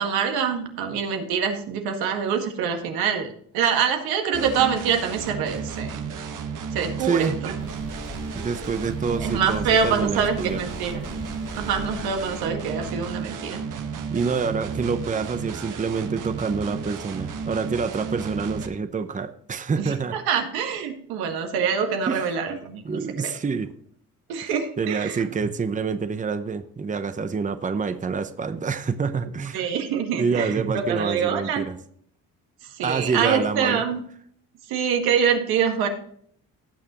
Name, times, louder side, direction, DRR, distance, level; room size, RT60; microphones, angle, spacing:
voice 1, 0.0-6.1 6.7-7.5 9.2-11.0 11.6-13.6 19.8-23.3 24.3-25.2 29.5-31.7 32.6-34.0 34.7-35.9, right 7 dB, 85° right, 4 dB, 1.8 m, -25 dB
sound 1, 4.3-18.7, right 6 dB, 55° right, 1.4 m, -33 dB
voice 2, 7.0-7.4 8.3-10.6 14.1-20.2 22.1-22.3 22.8-23.7 24.8-29.6 30.1-31.8 32.8-33.8, right 5 dB, 20° right, 10 dB, 0.8 m, -27 dB
sound 2, 7.6-12.7, left 1 dB, 15° left, 1.9 m, -40 dB
17.5 x 6.6 x 3.0 m, 0.63 s
cardioid pair, 85°, 36 cm